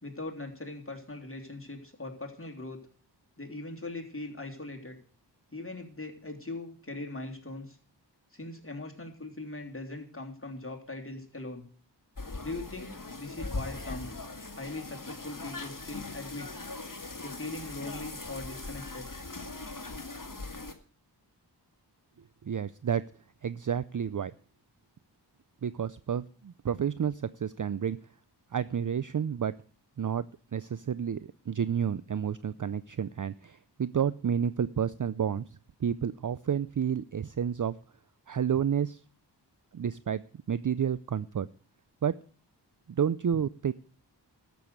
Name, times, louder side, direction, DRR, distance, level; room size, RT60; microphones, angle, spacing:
voice 1, 0.0-2.8 3.4-5.0 5.5-7.8 8.3-11.7 12.4-14.1 14.5-16.5 17.2-19.1, left 2 dB, 30° left, 1 dB, 3.3 m, -40 dB
sound 1, 12.2-20.7, left 3 dB, 45° left, 2.0 m, -40 dB
voice 2, 22.4-23.0 23.4-24.3 25.6-28.0 28.5-29.5 30.0-30.3 30.5-35.4 35.8-37.8 38.3-39.0 39.7-40.2 40.5-41.5 42.0-42.1 42.9-43.7, right 8 dB, 45° right, 16 dB, 0.5 m, -30 dB
13.0 x 7.0 x 8.1 m, 0.43 s
wide cardioid pair, 45°, 43 cm